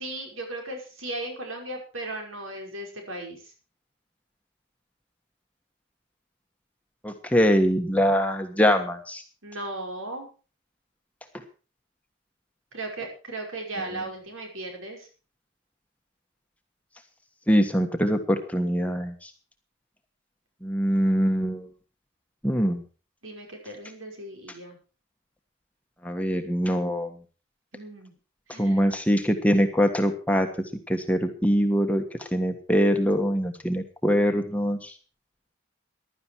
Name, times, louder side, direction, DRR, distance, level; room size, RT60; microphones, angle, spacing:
voice 1, 0.0-3.5 9.4-10.3 12.7-15.1 23.2-24.8 27.7-28.1 28.5-28.9, right 2 dB, 80° right, 2 dB, 5.5 m, -36 dB
voice 2, 7.0-9.2 17.5-19.3 20.6-21.7 22.4-22.8 26.0-27.1 28.6-30.5 30.9-34.9, equal, 5° left, 5 dB, 1.4 m, -23 dB
16.0 x 11.5 x 4.6 m, 0.36 s
head